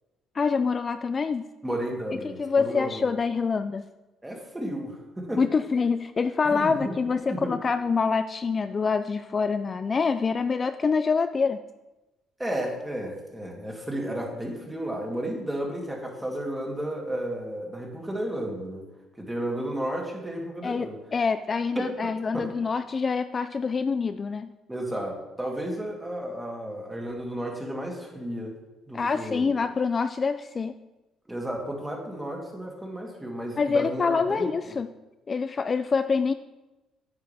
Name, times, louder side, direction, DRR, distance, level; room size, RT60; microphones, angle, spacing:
voice 1, 0.3-1.4 2.2-3.8 5.4-11.6 20.6-24.5 28.9-30.8 33.6-34.9 35.3-36.3, left 5 dB, 35° left, 10 dB, 0.3 m, -26 dB
voice 2, 1.6-3.1 4.2-5.4 6.4-6.9 7.3-7.5 12.4-18.9 19.2-21.0 21.8-21.9 22.3-22.4 24.7-28.5 28.9-29.5 31.3-34.8, right 1 dB, 10° right, 0 dB, 2.1 m, -33 dB
9.6 x 8.2 x 3.4 m, 1.0 s
cardioid pair, 100°, 0 cm